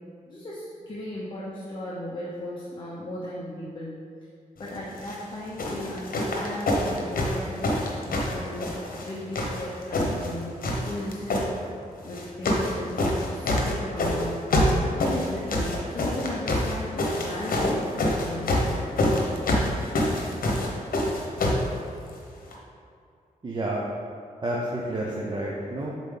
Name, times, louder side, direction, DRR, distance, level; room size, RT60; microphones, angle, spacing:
voice 1, 0.2-3.9 4.6-11.5 12.0-14.6 15.0-19.2, left 1 dB, 35° left, -7 dB, 0.9 m, -36 dB
sound 1, 4.9-5.2 5.6-9.1 9.3-10.3 10.6-11.5 12.1-12.7 13.0-21.7 22.5-22.6, left 1 dB, 85° left, 1.0 m, -25 dB
voice 2, 23.4-23.9 24.4-25.9, right 1 dB, 30° right, -4 dB, 0.6 m, -29 dB
7.2 x 4.0 x 3.8 m, 2.5 s
wide cardioid pair, 155°, 14 cm